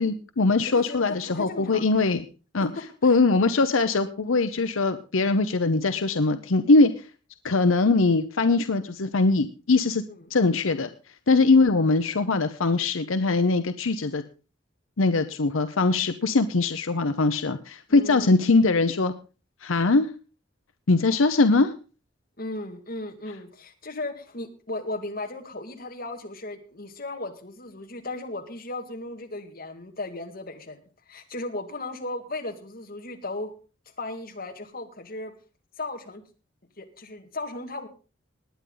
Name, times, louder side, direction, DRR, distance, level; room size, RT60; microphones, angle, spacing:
voice 1, 0.0-2.2 2.5-2.7 3.0-6.9 7.4-10.0 10.3-10.9 11.3-14.2 15.0-19.1 19.6-20.1 20.9-21.7, left 3 dB, 85° left, 10 dB, 0.8 m, -21 dB
voice 2, 0.6-1.8 2.8-3.1 10.1-10.3 17.9-18.4 22.4-30.8 31.1-33.5 34.0-35.3 35.8-36.2 36.8-37.9, left 2 dB, 45° left, 4 dB, 2.1 m, -36 dB
19.5 x 9.4 x 3.9 m, 0.34 s
head